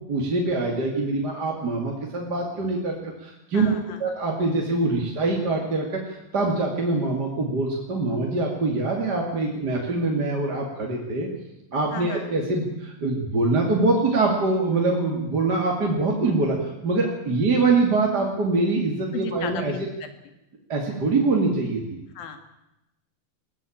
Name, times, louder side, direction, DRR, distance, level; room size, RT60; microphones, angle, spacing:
voice 1, 0.1-3.7 4.0-11.3 11.7-19.7 20.7-21.8, right 3 dB, 30° right, 0 dB, 2.9 m, -24 dB
voice 2, 3.5-4.1 9.5-9.6 11.9-12.3 17.3-17.4 19.1-20.1 22.2-22.4, left 7 dB, 85° left, 7 dB, 3.9 m, -36 dB
22.5 x 16.0 x 8.8 m, 0.92 s
omnidirectional pair, 4.0 m